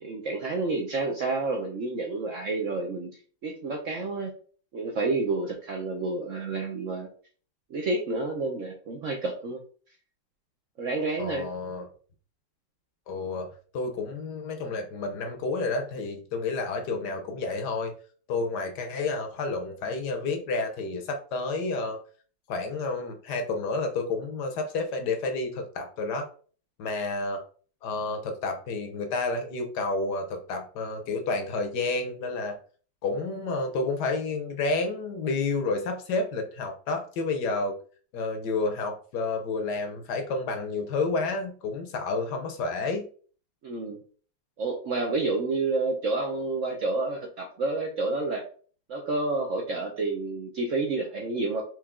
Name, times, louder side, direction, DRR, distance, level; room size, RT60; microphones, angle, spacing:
voice 1, 0.0-3.1 3.4-4.3 4.7-7.1 7.7-9.6 10.8-11.5 43.6-44.0 44.6-48.4 48.9-51.6, right 3 dB, 60° right, 1 dB, 0.8 m, -29 dB
voice 2, 11.2-11.9 13.1-13.5 13.7-17.9 18.3-22.0 22.5-26.3 26.8-27.4 27.8-32.6 33.0-37.7 38.1-43.0, left 3 dB, 65° left, 4 dB, 1.3 m, -30 dB
4.6 x 2.8 x 3.6 m, 0.42 s
omnidirectional pair, 2.0 m